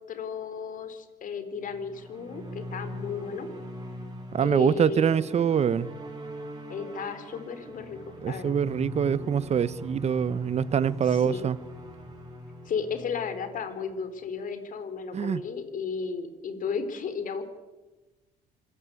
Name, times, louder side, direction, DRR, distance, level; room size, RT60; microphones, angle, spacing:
voice 1, 0.1-3.5 4.4-5.2 6.7-8.6 11.0-11.5 12.7-17.4, left 6 dB, 50° left, 3.9 m, -34 dB
sound 1, 1.6-14.1, equal, 25° right, 7.0 m, -41 dB
voice 2, 4.3-5.9 8.2-11.6 15.1-15.4, right 8 dB, 40° right, 0.9 m, -25 dB
26.0 x 17.0 x 8.4 m
cardioid pair, 110°, 17 cm